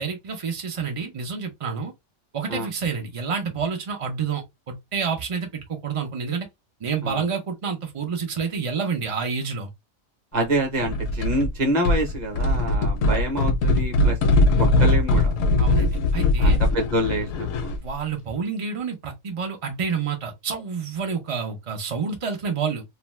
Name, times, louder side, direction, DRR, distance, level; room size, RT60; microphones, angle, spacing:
voice 1, 0.0-1.9 2.3-6.5 6.8-9.7 15.6-16.6 17.8-22.8, right 5 dB, 60° right, 0.3 m, -29 dB
voice 2, 10.3-15.3 16.4-17.8, right 1 dB, 40° right, 0.8 m, -27 dB
sound 1, 10.8-11.5 11.8-17.9, left 2 dB, 70° left, 0.9 m, -21 dB
2.5 x 2.2 x 3.0 m
omnidirectional pair, 1.4 m